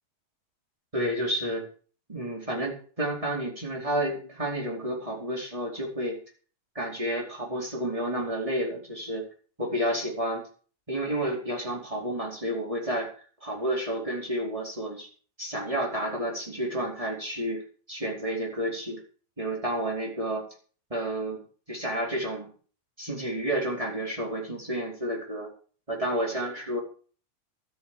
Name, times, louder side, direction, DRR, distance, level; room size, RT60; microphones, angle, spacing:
voice 1, 0.9-1.6 2.1-6.2 6.7-9.2 9.6-10.4 10.9-13.0 13.4-15.1 15.4-17.6 17.9-19.0 19.4-20.4 20.9-21.4 21.7-22.5 23.0-25.5 25.9-26.8, right 1 dB, 10° right, -2 dB, 4.6 m, -30 dB
13.0 x 8.9 x 7.7 m, 0.42 s
omnidirectional pair, 3.4 m